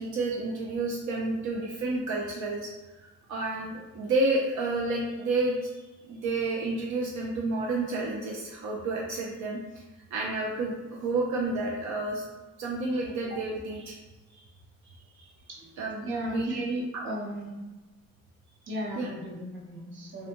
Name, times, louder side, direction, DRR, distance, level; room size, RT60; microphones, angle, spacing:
voice 1, 0.0-2.7 3.0-9.6 10.1-12.2 12.6-13.9 14.3-14.4 15.2-15.3 15.8-16.6 16.9-17.0 19.0-19.1, right 2 dB, 70° right, -2 dB, 0.5 m, -30 dB
voice 2, 16.0-17.6 18.7-20.3, right 1 dB, 40° right, -3 dB, 0.8 m, -35 dB
2.6 x 2.1 x 2.8 m, 1.2 s
cardioid pair, 90°, 30 cm